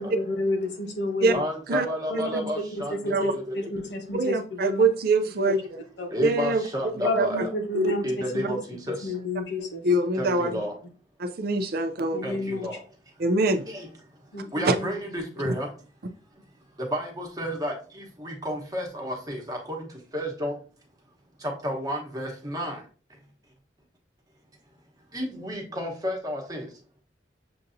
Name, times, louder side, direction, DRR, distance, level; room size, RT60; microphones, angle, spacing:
voice 1, 0.0-1.4 2.1-4.8 5.4-5.5 6.0-6.3 7.0-8.6 9.0-9.8 12.1-12.7 14.3-14.9, left 1 dB, 70° left, 1.0 m, -31 dB
voice 2, 1.3-3.5 6.1-7.5 8.0-9.0 10.2-10.7 12.2-12.8 13.7-13.9 14.5-15.7 16.9-19.9 20.1-20.5 21.6-22.8 25.1-26.6, equal, 20° right, 1.0 m, -31 dB
voice 3, 4.1-5.6 6.2-6.6 7.1-7.4 7.7-7.9 9.8-10.5 11.2-12.2 13.2-13.6 14.6-14.7 15.4-15.5, right 2 dB, 55° right, 0.5 m, -23 dB
6.7 x 2.6 x 2.7 m
head